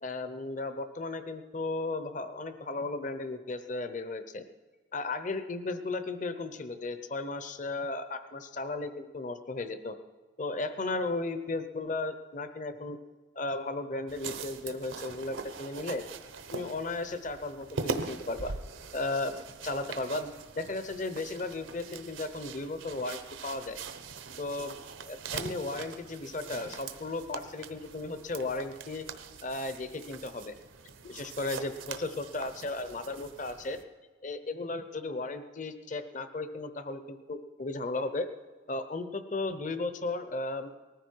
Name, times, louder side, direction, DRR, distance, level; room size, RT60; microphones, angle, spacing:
voice 1, 0.0-4.4 4.9-10.0 10.4-13.0 13.4-16.0 16.5-18.5 18.9-23.8 24.4-24.7 25.1-29.0 29.4-30.5 31.0-33.8 34.2-38.3 38.7-40.8, left 2 dB, 40° left, 10 dB, 0.8 m, -35 dB
sound 1, 14.1-33.8, right 4 dB, 80° right, 1.0 m, -42 dB
19.5 x 14.0 x 4.6 m, 1.3 s
head